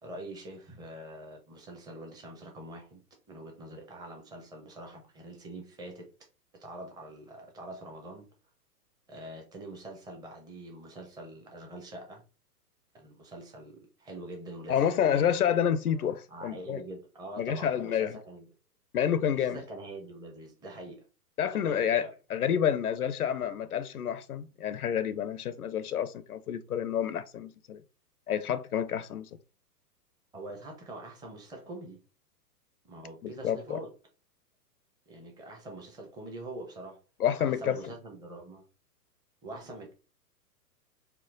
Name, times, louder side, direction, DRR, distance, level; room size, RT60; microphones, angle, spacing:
voice 1, 0.0-3.0 3.3-6.1 6.5-8.3 9.1-12.2 12.9-15.4 16.3-18.5 19.3-21.1 21.5-22.1 30.3-32.0 32.8-33.9 35.1-37.0 37.4-38.6 39.4-39.9, right 1 dB, 10° right, 0.7 m, -44 dB
voice 2, 14.7-16.8 17.4-18.2 18.9-19.6 21.4-27.8 28.3-29.3 33.2-33.8 37.2-37.8, left 9 dB, 65° left, 0.6 m, -29 dB
4.4 x 2.0 x 3.8 m
figure-of-eight pair, 115°, 48 cm